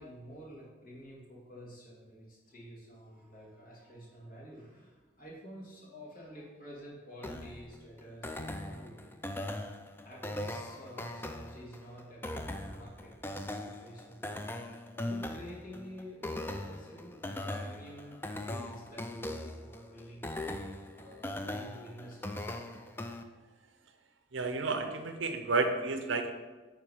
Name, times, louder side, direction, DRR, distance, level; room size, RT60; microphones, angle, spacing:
voice 1, 0.0-9.1 10.0-22.8, equal, 45° left, -4 dB, 2.1 m, -50 dB
sound 1, 7.2-23.2, left 1 dB, 10° left, 0.3 m, -40 dB
voice 2, 24.3-26.3, right 3 dB, 65° right, 6 dB, 0.7 m, -31 dB
9.5 x 3.7 x 4.9 m, 1.3 s
head